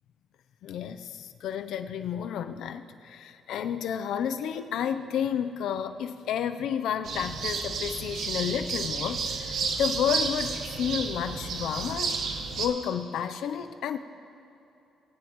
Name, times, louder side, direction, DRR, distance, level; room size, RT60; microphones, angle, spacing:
voice 1, 0.6-12.2 12.6-14.0, left 8 dB, 80° left, 9 dB, 0.6 m, -31 dB
sound 1, 7.0-12.7, right 5 dB, 70° right, 1.1 m, -31 dB
20.5 x 9.4 x 3.1 m, 2.9 s
cardioid pair, 90°, 0 cm